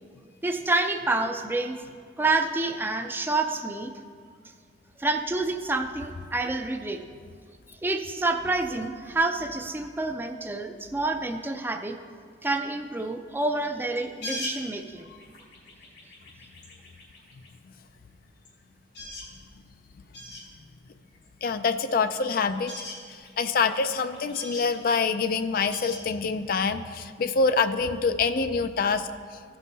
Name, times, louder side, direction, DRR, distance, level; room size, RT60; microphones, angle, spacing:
voice 1, 0.4-1.8 2.2-3.9 5.0-7.0 7.8-12.0 12.4-15.1, right 2 dB, 10° right, 5 dB, 0.4 m, -28 dB
sound 1, 13.9-17.5 18.1-18.2 18.4-18.5 18.8-19.4 19.7-19.8 20.1-20.5 21.2-22.0 22.3-26.9, left 2 dB, 85° left, 2.8 m, -41 dB
voice 2, 21.4-22.8 23.1-29.1, left 4 dB, 55° left, 10 dB, 0.4 m, -26 dB
15.5 x 5.5 x 4.1 m, 2.1 s
head